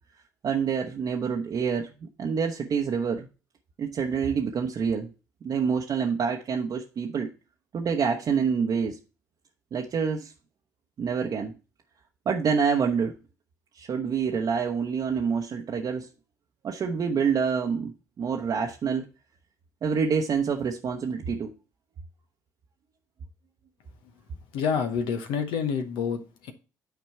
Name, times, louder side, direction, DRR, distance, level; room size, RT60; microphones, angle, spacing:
voice 1, 0.4-3.3 3.8-5.1 5.4-7.3 7.7-9.0 9.7-10.3 11.0-11.5 12.3-13.1 13.8-16.1 16.6-19.1 19.8-21.5, right 6 dB, 50° right, 0.9 m, -27 dB
voice 2, 24.5-26.5, left 6 dB, 70° left, 1.0 m, -28 dB
9.3 x 4.3 x 4.5 m
hypercardioid pair, 50°, 8 cm